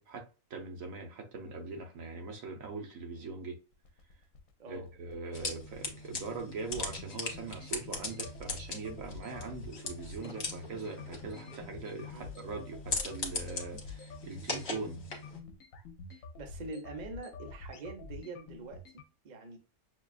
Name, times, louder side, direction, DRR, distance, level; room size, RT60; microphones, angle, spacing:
voice 1, 0.1-3.6 4.7-15.0, right 4 dB, 70° right, 1.3 m, -41 dB
sound 1, 3.7-19.0, left 3 dB, 70° left, 1.0 m, -48 dB
sound 2, 5.3-15.4, left 3 dB, 50° left, 1.3 m, -40 dB
voice 2, 16.1-19.6, right 3 dB, 40° right, 0.8 m, -45 dB
6.3 x 2.3 x 2.4 m
omnidirectional pair, 1.5 m